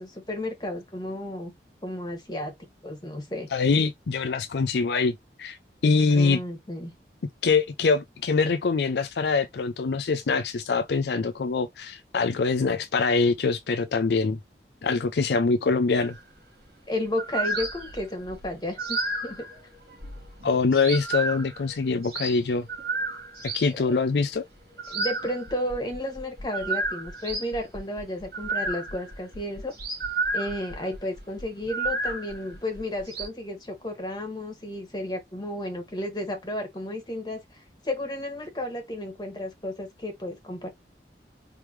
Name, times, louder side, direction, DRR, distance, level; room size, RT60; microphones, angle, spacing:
voice 1, 0.0-1.5 1.8-2.5 2.8-3.5 6.1-6.9 16.9-19.5 24.9-29.7 30.3-37.4 37.8-40.7, left 1 dB, 25° left, 1.8 m, -32 dB
voice 2, 3.5-5.6 5.8-6.4 7.4-14.4 14.8-16.2 20.4-22.7 23.4-24.4, left 4 dB, 70° left, 0.4 m, -24 dB
sound 1, 16.0-16.2 17.1-23.7 24.7-33.3, right 3 dB, 60° right, 2.8 m, -32 dB
4.6 x 3.5 x 3.1 m
head